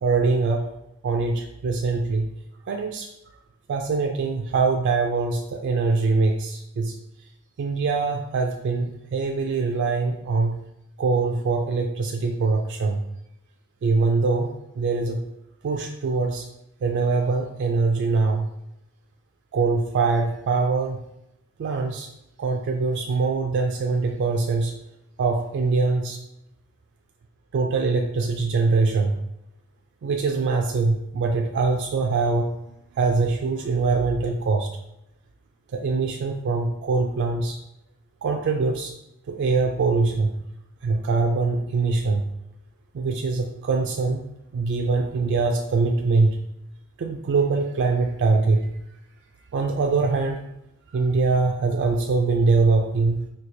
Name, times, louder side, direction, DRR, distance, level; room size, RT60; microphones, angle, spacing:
voice 1, 0.0-0.7 1.0-2.3 2.7-3.1 3.7-6.9 7.6-10.6 11.0-13.0 13.8-15.2 15.6-16.5 16.8-18.5 19.5-21.0 21.6-22.1 22.4-24.7 25.2-26.2 27.5-29.1 30.0-32.5 33.0-34.7 35.7-37.6 38.2-38.9 39.3-40.3 40.8-42.2 42.9-44.2 44.5-46.4 47.0-48.6 49.5-50.4 50.9-53.3, right 4 dB, 55° right, 2 dB, 0.3 m, -23 dB
4.4 x 2.3 x 2.6 m, 0.84 s
head